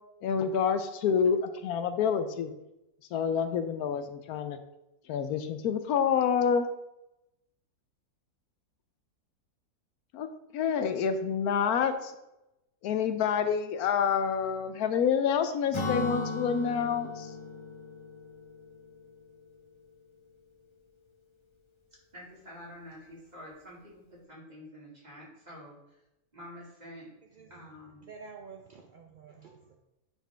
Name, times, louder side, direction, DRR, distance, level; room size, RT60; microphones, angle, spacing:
voice 1, 0.2-2.5 3.1-4.6 5.1-6.7 10.1-10.3 10.5-12.1 12.8-17.3, left 7 dB, 80° left, 9 dB, 1.1 m, -28 dB
Acoustic guitar / Strum, 15.7-19.4, left 3 dB, 25° left, 0.9 m, -36 dB
voice 2, 22.1-26.0 26.3-27.1 27.5-28.1, equal, 25° right, -5 dB, 2.3 m, -48 dB
voice 3, 28.0-29.7, right 5 dB, 70° right, 3 dB, 0.4 m, -49 dB
9.2 x 4.5 x 3.4 m, 0.92 s
omnidirectional pair, 1.6 m